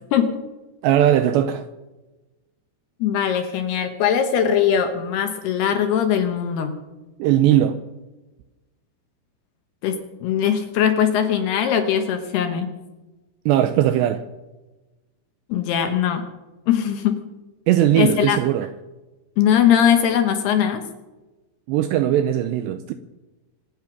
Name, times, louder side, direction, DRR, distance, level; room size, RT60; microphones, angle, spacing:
voice 1, 0.1-0.4 3.0-6.7 9.8-12.7 15.5-16.3 16.7-17.2 18.0-18.4 19.4-20.8, left 9 dB, 70° left, 2.7 m, -20 dB
voice 2, 0.8-1.6 7.2-7.8 13.5-14.2 17.7-18.7 21.7-22.9, right 11 dB, 80° right, 2.5 m, -19 dB
25.0 x 9.5 x 5.9 m
omnidirectional pair, 5.6 m